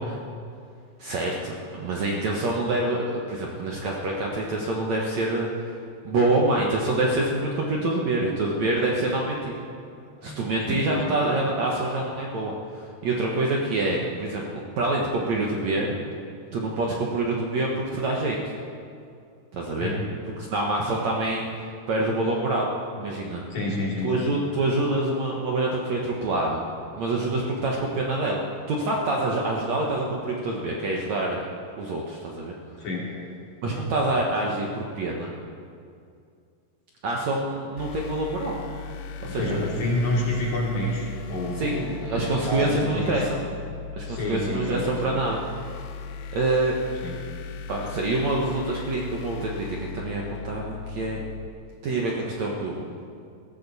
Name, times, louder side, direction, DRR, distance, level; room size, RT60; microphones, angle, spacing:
voice 1, 1.0-5.5 6.0-9.5 10.2-14.4 14.8-16.0 16.5-18.5 19.5-19.9 20.5-21.5 21.9-22.7 23.0-23.4 24.0-26.6 27.0-31.4 31.8-32.5 33.6-35.3 37.0-38.6 39.2-39.6 41.6-43.4 43.9-45.4 46.3-46.8 47.7-51.2 51.8-52.9, right 2 dB, 65° right, -2 dB, 1.8 m, -26 dB
voice 2, 10.0-11.2 19.8-20.0 23.5-24.4 32.8-33.1 39.3-43.2 44.1-45.0 47.0-47.2, left 1 dB, 45° left, -4 dB, 4.3 m, -29 dB
sound 1, 37.8-51.5, left 5 dB, 75° left, 2.5 m, -38 dB
20.0 x 15.5 x 4.2 m, 2.4 s
omnidirectional pair, 4.9 m